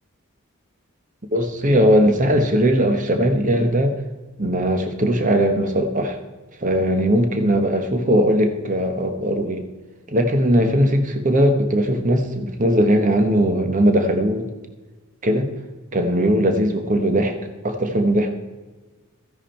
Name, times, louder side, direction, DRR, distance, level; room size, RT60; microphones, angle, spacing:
voice 1, 1.3-4.0 4.4-6.2 6.6-9.6 10.1-14.5 15.2-15.5 15.9-18.3, equal, 35° right, 6 dB, 1.1 m, -19 dB
14.5 x 10.5 x 4.4 m, 1.2 s
head